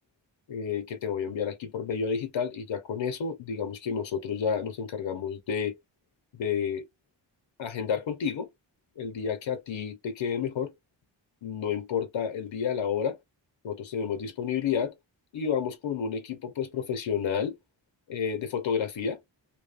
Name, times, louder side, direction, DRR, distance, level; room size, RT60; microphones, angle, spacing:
voice 1, 0.5-5.7 6.3-6.9 7.6-8.5 9.0-10.7 11.4-13.2 13.6-14.9 15.3-17.6 18.1-19.2, left 7 dB, 80° left, 0.8 m, -30 dB
2.6 x 2.2 x 2.4 m
cardioid pair, 50°, 45 cm